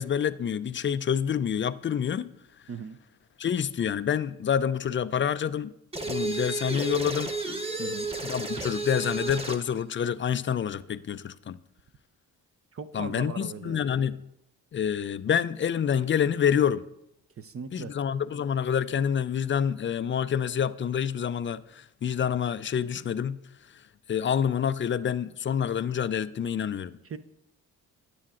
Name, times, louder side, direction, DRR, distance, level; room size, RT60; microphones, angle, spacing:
voice 1, 0.0-2.3 3.4-5.7 6.1-7.3 8.2-11.6 12.9-14.2 14.7-16.8 17.7-23.4 24.1-27.0, left 8 dB, 30° left, 0.4 m, -27 dB
sound 1, 5.9-9.7, right 3 dB, 15° right, 1.1 m, -32 dB
voice 2, 12.7-13.9 17.4-17.9 27.0-27.2, right 6 dB, 35° right, 0.6 m, -39 dB
10.0 x 9.7 x 2.5 m
supercardioid pair, 55°, 39 cm